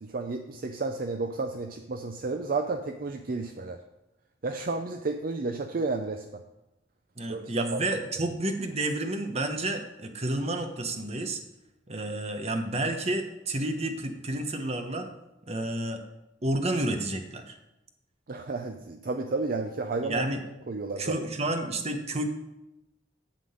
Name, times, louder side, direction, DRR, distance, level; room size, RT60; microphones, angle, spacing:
voice 1, 0.0-3.8 4.4-6.4 7.3-7.8 18.3-20.3 20.7-21.2, right 3 dB, 50° right, 5 dB, 0.6 m, -32 dB
voice 2, 7.2-11.4 11.9-15.1 15.5-16.0 16.4-17.6 20.0-20.4 21.0-22.2, right 1 dB, 35° right, 6 dB, 1.1 m, -30 dB
11.5 x 3.8 x 7.7 m, 0.94 s
head